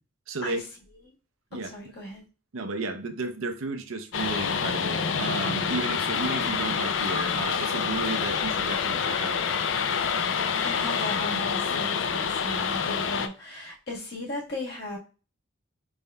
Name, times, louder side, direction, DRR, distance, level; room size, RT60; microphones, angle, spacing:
voice 1, 0.3-0.6 1.5-1.7 2.5-9.4, right 3 dB, 85° right, 0.6 m, -33 dB
voice 2, 1.5-2.2 10.6-15.0, left 1 dB, 55° left, 1.5 m, -36 dB
sound 1, 4.1-13.3, left 6 dB, 70° left, 0.4 m, -27 dB
5.2 x 3.5 x 2.2 m
head